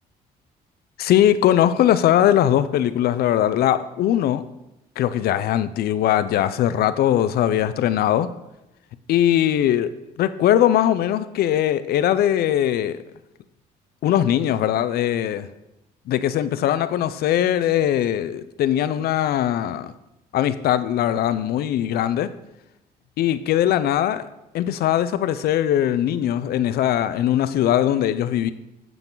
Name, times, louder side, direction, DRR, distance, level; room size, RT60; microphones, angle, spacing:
voice 1, 1.0-4.4 5.0-8.3 9.1-9.9 10.2-13.0 14.0-15.5 16.1-19.9 20.3-22.3 23.2-24.3 24.5-28.5, left 11 dB, 65° left, 14 dB, 0.6 m, -20 dB
9.1 x 7.0 x 3.9 m, 0.91 s
cardioid pair, 110°, 17 cm